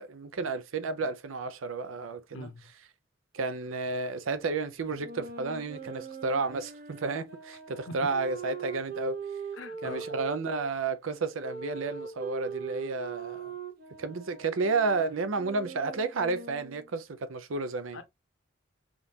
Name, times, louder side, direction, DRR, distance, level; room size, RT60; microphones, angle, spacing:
voice 1, 0.0-2.5 3.3-9.2 9.8-13.5 14.0-18.0, right 3 dB, 85° right, 0.6 m, -32 dB
sound 1, 4.9-10.7 11.4-16.9, right 5 dB, 45° right, 1.0 m, -41 dB
voice 2, 9.6-10.1 17.9-18.0, left 2 dB, 75° left, 0.7 m, -41 dB
3.6 x 2.5 x 2.8 m
head